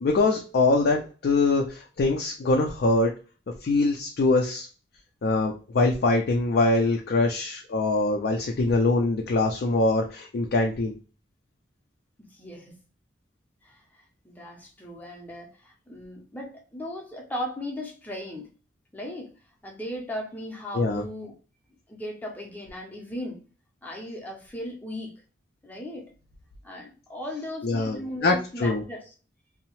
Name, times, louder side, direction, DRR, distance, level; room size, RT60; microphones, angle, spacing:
voice 1, 0.0-3.1 3.6-4.7 5.2-10.9 20.7-21.0 27.6-28.8, left 2 dB, 55° left, 0.4 m, -23 dB
voice 2, 12.2-12.8 13.6-18.5 18.9-19.3 19.6-21.3 21.9-23.4 23.8-25.1 25.6-26.1 26.6-29.1, left 1 dB, 10° left, 0.6 m, -37 dB
2.7 x 2.0 x 2.9 m
head